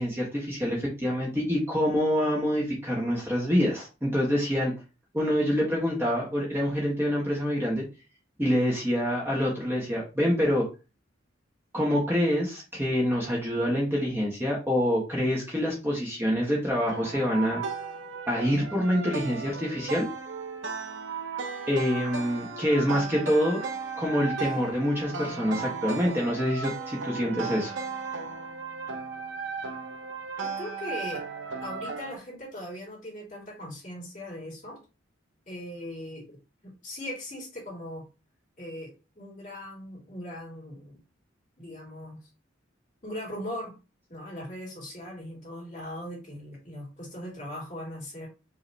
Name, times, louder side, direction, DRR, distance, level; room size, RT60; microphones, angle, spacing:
voice 1, 0.0-4.7 5.1-7.8 8.4-10.7 11.7-17.6 18.3-20.1 21.7-23.6 24.0-27.8, equal, 10° right, -4 dB, 1.1 m, -26 dB
sound 1, 16.9-32.2, right 5 dB, 70° right, 0.7 m, -36 dB
voice 2, 30.4-31.2 31.6-34.8 35.5-38.0 38.6-41.0 41.6-42.3 43.0-43.8 44.1-48.3, left 1 dB, 40° left, -5 dB, 2.7 m, -39 dB
5.1 x 2.9 x 3.2 m, 0.30 s
head